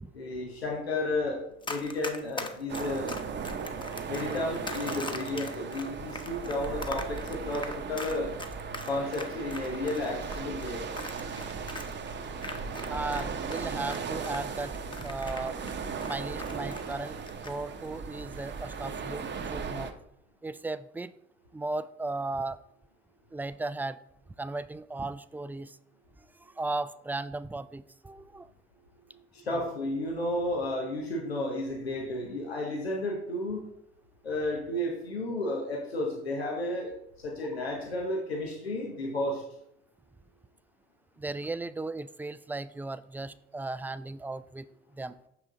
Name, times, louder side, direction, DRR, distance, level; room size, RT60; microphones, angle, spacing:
voice 1, 0.1-3.1 4.1-8.3 8.9-10.8 29.3-33.7 34.2-36.9 37.2-39.4, left 1 dB, 90° left, -1 dB, 0.9 m, -32 dB
Run, 1.6-13.2 13.5-16.9 17.2-17.5, left 2 dB, 15° left, 1.0 m, -40 dB
sound 1, 2.7-19.9, right 5 dB, 35° right, 0.9 m, -37 dB
voice 2, 12.8-15.6 16.0-17.1 17.4-19.9 20.4-21.1 21.5-22.6 23.3-24.0 24.4-25.8 26.3-28.5 37.6-37.7 41.2-44.7 44.9-45.2, right 2 dB, 5° right, 15 dB, 0.3 m, -36 dB
6.7 x 5.8 x 3.8 m, 0.76 s
figure-of-eight pair, 50°, 30 cm